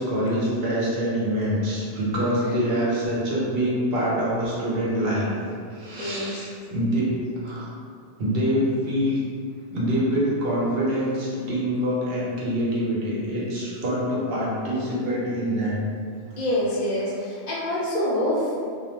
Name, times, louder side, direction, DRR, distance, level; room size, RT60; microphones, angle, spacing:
voice 1, 0.0-5.3 5.7-7.1 7.4-7.7 8.2-9.2 9.7-15.8, equal, 60° right, -6 dB, 0.8 m, -25 dB
voice 2, 2.2-2.6 6.0-6.3 16.4-18.5, left 1 dB, 50° left, -7 dB, 0.6 m, -26 dB
2.3 x 2.1 x 2.8 m, 2.2 s
omnidirectional pair, 1.2 m